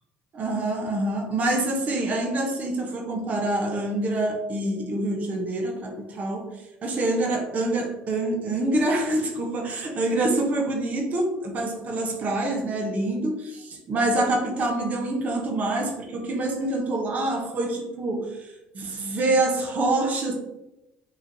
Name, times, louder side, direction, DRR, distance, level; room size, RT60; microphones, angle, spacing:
voice 1, 0.3-6.5 6.8-13.4 13.9-20.3, right 2 dB, 45° right, 2 dB, 0.8 m, -26 dB
3.0 x 2.6 x 3.8 m, 0.90 s
supercardioid pair, 95°, 4 cm